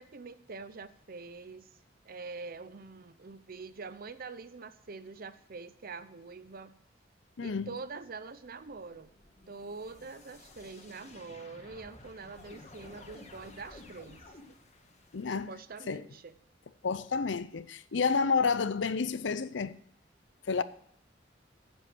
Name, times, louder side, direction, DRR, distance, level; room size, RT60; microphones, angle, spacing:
voice 1, 0.0-1.7 2.0-6.8 7.4-9.1 9.5-14.2 15.3-16.3, right 4 dB, 50° right, 0.7 m, -45 dB
voice 2, 7.4-7.7 15.1-15.5 15.9-16.0 16.8-19.7 20.5-20.6, left 5 dB, 75° left, 0.6 m, -30 dB
sound 1, 8.4-15.5, left 2 dB, 35° left, 1.7 m, -53 dB
10.0 x 7.8 x 6.2 m
head